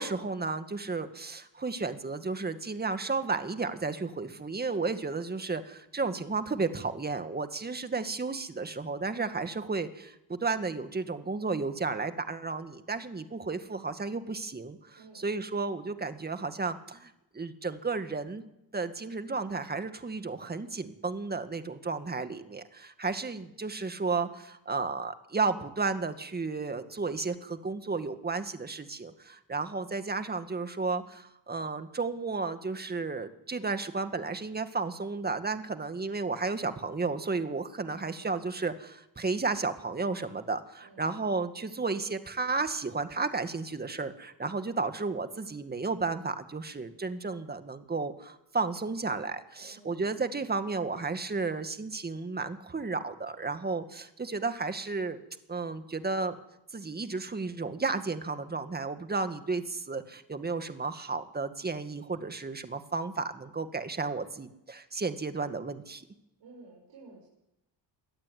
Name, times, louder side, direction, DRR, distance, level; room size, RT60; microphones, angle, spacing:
voice 1, 0.0-18.4 18.7-55.2 55.5-56.4 56.7-66.1, right 4 dB, 20° right, 9 dB, 2.0 m, -33 dB
voice 2, 14.9-15.4 40.8-41.1 49.6-50.0 66.4-67.3, right 3 dB, 60° right, -2 dB, 6.8 m, -53 dB
23.0 x 13.5 x 9.6 m, 0.89 s
cardioid pair, 95°, 44 cm